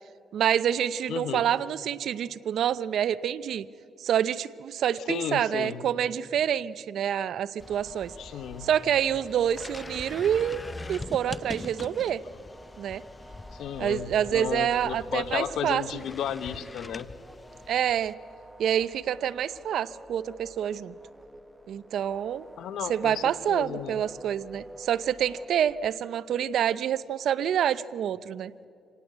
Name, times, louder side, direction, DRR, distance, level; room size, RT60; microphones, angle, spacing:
voice 1, 0.3-3.7 4.0-8.1 8.6-10.6 10.9-12.2 12.8-13.0 13.8-15.8 17.7-18.1 18.6-20.9 21.7-22.5 22.9-28.5, right 9 dB, 70° right, 17 dB, 0.6 m, -27 dB
voice 2, 1.1-1.5 5.1-5.8 8.2-8.7 13.5-17.1 22.6-24.0, left 9 dB, 80° left, 12 dB, 1.1 m, -34 dB
sound 1, 7.6-18.1, left 3 dB, 20° left, 0.7 m, -43 dB
sound 2, 7.6-25.9, right 1 dB, 5° right, 1.3 m, -50 dB
26.5 x 18.5 x 8.0 m, 2.7 s
cardioid pair, 90°, 0 cm